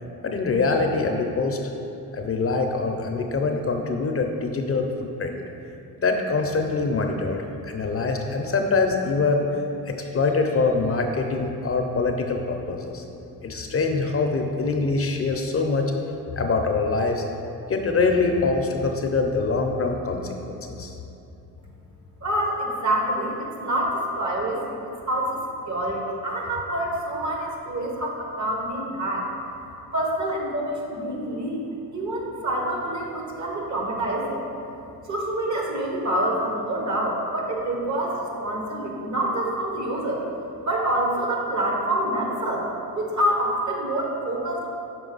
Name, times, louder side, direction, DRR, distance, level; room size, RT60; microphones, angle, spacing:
voice 1, 0.2-1.6 2.1-4.9 5.2-5.4 6.0-9.6 9.9-13.0 13.4-15.9 16.3-17.2 17.7-20.9, left 3 dB, 40° left, 3 dB, 0.5 m, -24 dB
voice 2, 22.2-24.8 25.1-25.4 25.7-29.3 29.9-31.6 31.9-34.4 35.1-40.2 40.7-42.6 42.9-44.7, right 1 dB, 50° right, -1 dB, 1.3 m, -26 dB
6.1 x 4.6 x 3.9 m, 2.8 s
cardioid pair, 85°, 38 cm